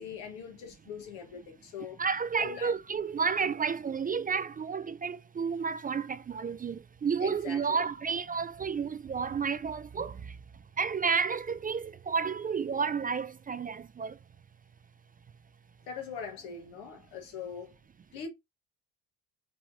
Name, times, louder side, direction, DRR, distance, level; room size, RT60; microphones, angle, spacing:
voice 1, 0.0-2.0 2.4-2.7 7.2-7.8 15.9-17.7 18.1-18.3, left 6 dB, 85° left, 1.3 m, -41 dB
voice 2, 2.0-10.4 10.8-14.2, right 6 dB, 25° right, 0.3 m, -31 dB
4.7 x 3.0 x 2.7 m
supercardioid pair, 65°, 37 cm